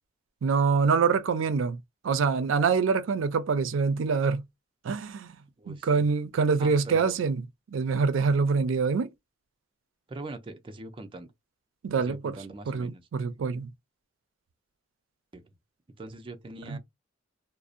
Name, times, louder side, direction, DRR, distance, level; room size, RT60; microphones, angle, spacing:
voice 1, 0.4-1.8 2.0-4.4 4.8-5.4 5.7-7.4 7.7-9.1 11.8-12.3 12.7-13.7 16.7-16.8, right 5 dB, 85° right, 0.4 m, -25 dB
voice 2, 5.6-6.1 6.6-7.2 10.1-11.3 12.0-13.1 15.3-15.4 16.0-16.8, right 2 dB, 25° right, 0.4 m, -42 dB
2.6 x 2.0 x 2.4 m
head